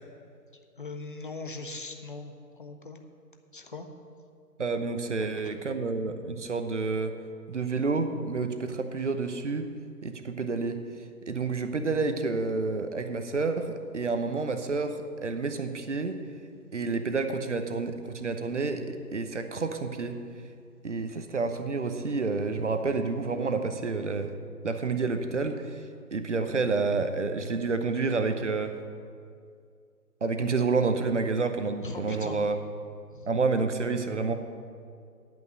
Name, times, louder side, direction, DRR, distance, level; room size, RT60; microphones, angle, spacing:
voice 1, 0.8-2.3 2.6-3.0 3.5-3.9 5.2-5.7 31.8-32.4 33.1-33.3, left 3 dB, 35° left, 5 dB, 0.7 m, -40 dB
voice 2, 4.6-7.2 7.5-9.7 10.0-10.8 11.3-16.2 16.7-20.2 20.8-24.3 24.6-25.8 26.1-28.7 30.2-32.6 33.3-34.3, right 4 dB, 50° right, 8 dB, 0.8 m, -29 dB
10.5 x 5.9 x 7.7 m, 2.3 s
figure-of-eight pair, 145°, 48 cm